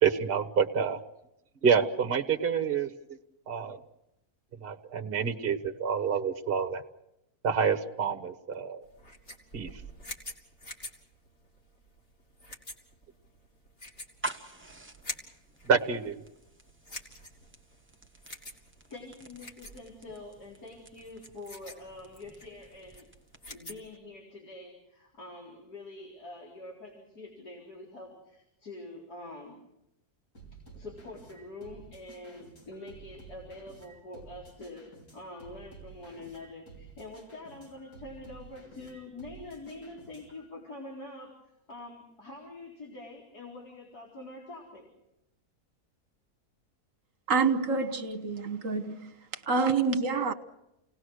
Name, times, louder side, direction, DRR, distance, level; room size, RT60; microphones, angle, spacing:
voice 1, 0.0-1.0 1.6-2.9 3.5-3.8 4.6-6.8 7.4-8.8 9.5-9.8 15.7-16.2, right 6 dB, 40° right, 1.4 m, -27 dB
sound 1, 8.8-24.0, left 1 dB, 45° left, 3.7 m, -47 dB
sound 2, 14.0-23.7, right 3 dB, 10° right, 1.3 m, -47 dB
voice 2, 18.9-23.1 23.5-29.6 30.5-41.4 41.7-44.9, left 2 dB, 90° left, 4.7 m, -45 dB
sound 3, 30.3-40.5, right 4 dB, 75° left, 6.0 m, -52 dB
voice 3, 47.3-49.1 49.5-50.3, right 4 dB, 60° right, 1.6 m, -27 dB
29.5 x 19.0 x 6.5 m
omnidirectional pair, 1.6 m